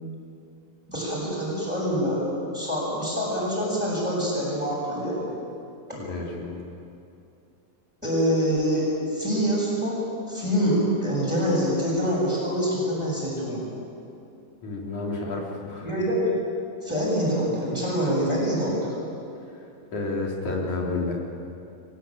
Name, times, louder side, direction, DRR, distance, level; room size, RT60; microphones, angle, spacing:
voice 1, 0.9-2.3 2.5-5.3 5.9-6.0 8.0-10.0 10.3-13.7 15.8-16.2 16.8-18.9, equal, ahead, -8 dB, 7.2 m, -25 dB
voice 2, 6.0-6.6 14.6-15.9 19.9-21.2, left 3 dB, 55° left, -2 dB, 4.9 m, -30 dB
23.5 x 21.0 x 9.2 m, 2.6 s
omnidirectional pair, 4.1 m